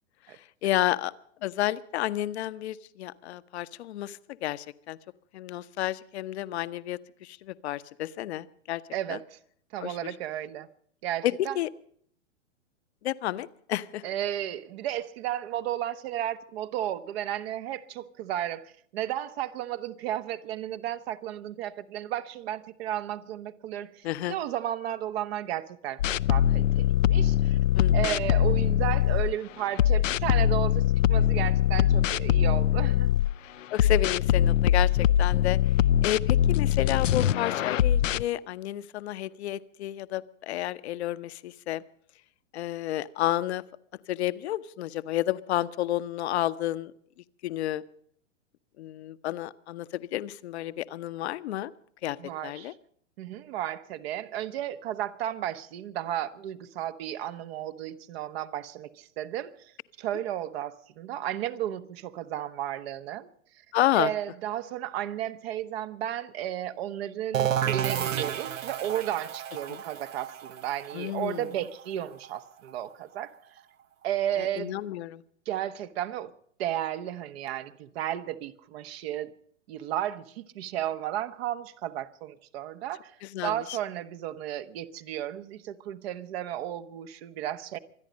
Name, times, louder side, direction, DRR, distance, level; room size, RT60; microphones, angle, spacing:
voice 1, 0.6-1.1 1.4-5.0 5.3-8.8 9.1-9.2 9.8-10.0 11.2-11.7 13.0-14.0 24.0-24.4 27.7-28.2 33.7-35.6 36.0-41.8 42.5-43.6 44.1-46.9 47.4-47.8 48.8-51.7 52.0-52.2 52.4-52.7 63.7-64.1 69.7-69.8 70.9-71.5 74.4-75.2 83.2-83.8, left 14 dB, 55° left, 0.9 m, -31 dB
voice 2, 8.9-9.4 9.7-10.7 11.0-11.6 14.0-26.0 26.3-27.6 27.9-33.1 52.2-52.7 53.2-59.7 60.0-63.3 64.0-73.3 74.0-74.8 75.5-76.3 76.6-79.3 79.7-83.1 83.4-87.8, right 12 dB, 50° right, 1.3 m, -33 dB
sound 1, 26.0-29.3 29.8-33.3 33.8-38.2, left 10 dB, 80° left, 0.6 m, -23 dB
sound 2, 67.3-72.9, right 9 dB, 85° right, 0.8 m, -32 dB
25.0 x 10.0 x 5.3 m
hypercardioid pair, 115°, 38 cm